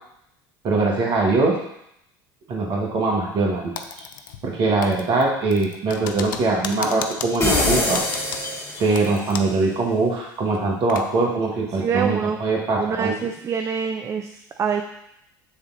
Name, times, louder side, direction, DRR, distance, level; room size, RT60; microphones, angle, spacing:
voice 1, 0.6-1.5 2.5-3.7 4.0-4.1 4.4-8.0 8.8-13.1, right 3 dB, 45° right, -1 dB, 1.7 m, -22 dB
Typing, 3.8-4.6 4.8-9.6 9.9-10.0 10.5-11.1, left 7 dB, 75° left, 0.5 m, -34 dB
sound 1, 7.4-9.2, left 2 dB, 25° left, 2.1 m, -23 dB
voice 2, 11.7-12.4 12.8-14.8, right 6 dB, 25° right, 6 dB, 0.4 m, -25 dB
7.0 x 3.6 x 4.1 m, 0.78 s
hypercardioid pair, 75°, 11 cm